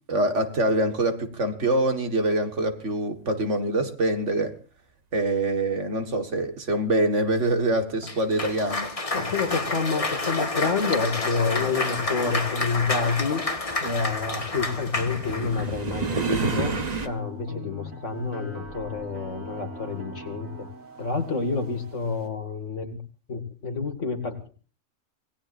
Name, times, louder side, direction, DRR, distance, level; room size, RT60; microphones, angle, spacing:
voice 1, 0.1-4.6 5.1-8.9, right 1 dB, 65° right, 2.0 m, -25 dB
Cheering / Applause, 8.0-15.7, left 2 dB, 25° left, 1.5 m, -29 dB
voice 2, 9.1-13.4 13.8-20.7 21.0-23.0 23.3-24.5, left 4 dB, 65° left, 2.5 m, -28 dB
sound 1, 9.8-9.9 11.0-17.1, right 4 dB, 35° right, 1.2 m, -31 dB
sound 2, 15.4-22.3, right 2 dB, 85° right, 2.6 m, -43 dB
26.5 x 18.5 x 2.6 m
omnidirectional pair, 1.4 m